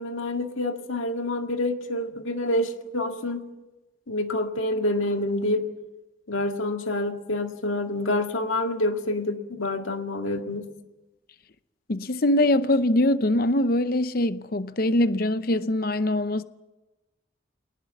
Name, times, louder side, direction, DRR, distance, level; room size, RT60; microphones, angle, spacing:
voice 1, 0.0-3.5 4.1-5.7 6.3-10.7, left 1 dB, 90° left, 1.9 m, -27 dB
voice 2, 11.9-16.4, left 1 dB, 50° left, 0.7 m, -23 dB
21.5 x 19.0 x 7.3 m
head